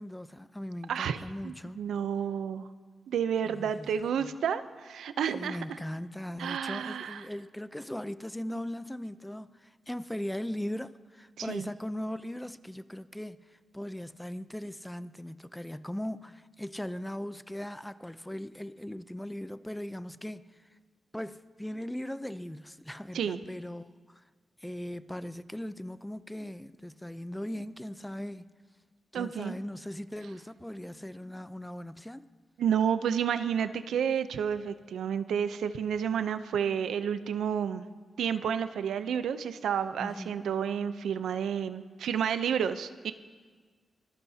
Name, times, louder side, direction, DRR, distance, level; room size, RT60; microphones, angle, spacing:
voice 1, 0.0-1.8 3.4-3.9 4.2-4.3 5.3-20.7 21.1-24.2 24.6-28.5 29.1-32.3 40.0-40.5, left 1 dB, 5° left, 0.6 m, -39 dB
voice 2, 0.9-2.7 3.1-5.6 6.4-7.2 11.4-11.7 23.1-23.4 29.1-29.6 32.6-37.9 38.2-43.1, right 8 dB, 90° right, 0.6 m, -30 dB
25.0 x 20.0 x 2.8 m
cardioid pair, 70°, 0 cm